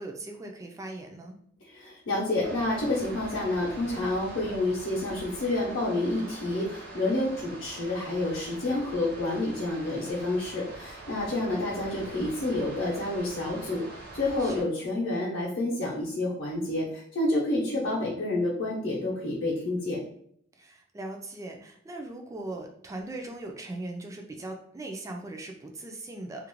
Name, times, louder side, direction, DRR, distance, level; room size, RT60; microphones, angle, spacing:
voice 1, 0.0-1.4 11.1-11.5 14.4-14.7 17.6-17.7 20.6-26.5, right 2 dB, 15° right, 2 dB, 0.3 m, -40 dB
voice 2, 1.7-20.0, left 2 dB, 65° left, -8 dB, 0.7 m, -29 dB
sound 1, 2.4-14.6, right 2 dB, 50° right, 0.7 m, -44 dB
2.4 x 2.0 x 3.0 m, 0.65 s
head